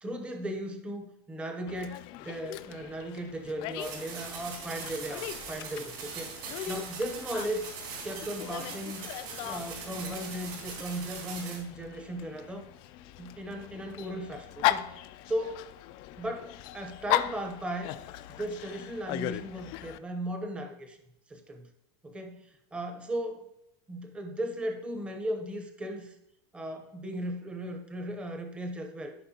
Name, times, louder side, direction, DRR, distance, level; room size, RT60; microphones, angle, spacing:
voice 1, 0.0-7.7 8.0-9.1 9.4-12.7 13.2-15.7 16.2-17.9 18.4-21.0 21.3-21.7 22.0-23.5 23.9-26.1 26.5-29.1, right 1 dB, 10° right, 5 dB, 0.8 m, -37 dB
Dog, 1.7-20.0, left 14 dB, 40° left, 0.3 m, -37 dB
sound 1, 3.8-11.6, right 5 dB, 60° right, 3.1 m, -41 dB
14.0 x 5.3 x 2.8 m, 0.81 s
supercardioid pair, 170°, 12 cm